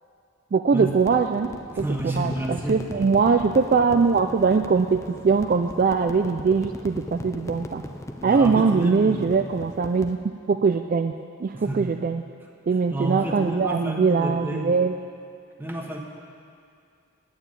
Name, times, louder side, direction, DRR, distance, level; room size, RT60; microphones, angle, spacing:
voice 1, 0.5-1.5 1.8-1.9 2.1-7.8 8.2-10.2 10.5-11.1 11.4-12.2 12.7-14.9, right 5 dB, 45° right, 7 dB, 0.3 m, -21 dB
sound 1, 0.9-10.1, left 1 dB, 15° left, 0.5 m, -38 dB
voice 2, 1.7-3.0 8.2-9.4 11.5-11.9 12.7-14.8 15.6-16.0, right 1 dB, 10° right, 0 dB, 1.2 m, -30 dB
9.2 x 8.8 x 9.0 m, 2.4 s
head